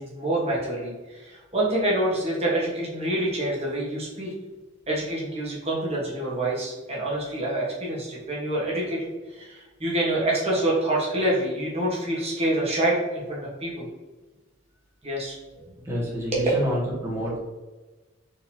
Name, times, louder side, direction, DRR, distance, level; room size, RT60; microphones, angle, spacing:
voice 1, 0.0-4.3 4.9-13.9 15.0-15.3 16.3-16.6, right 1 dB, 30° right, -5 dB, 1.3 m, -26 dB
voice 2, 15.8-17.4, equal, 15° right, -6 dB, 1.4 m, -28 dB
4.3 x 4.0 x 2.8 m, 1.2 s
head